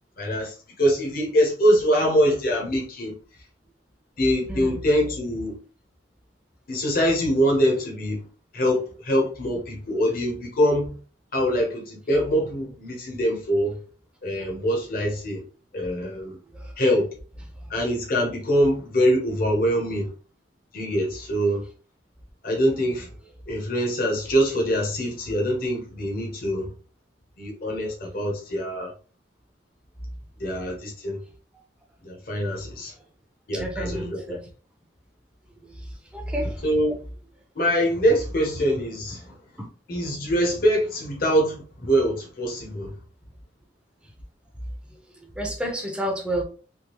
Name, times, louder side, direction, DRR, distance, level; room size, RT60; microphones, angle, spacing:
voice 1, 0.2-3.1 4.2-5.6 6.7-8.2 8.5-10.9 11.3-13.8 14.2-15.4 15.7-16.4 16.8-17.1 17.7-20.1 20.7-21.6 22.4-23.1 23.5-26.7 27.4-28.9 30.4-31.2 32.0-32.9 33.5-34.4 36.6-36.9 37.5-39.4 39.9-42.9, equal, 50° left, 1.0 m, -24 dB
voice 2, 4.5-4.8 16.5-16.7 32.5-32.6 33.5-34.4 35.6-35.8 36.1-36.6 44.9-46.4, right 1 dB, 5° right, 0.7 m, -30 dB
3.5 x 2.3 x 3.0 m
head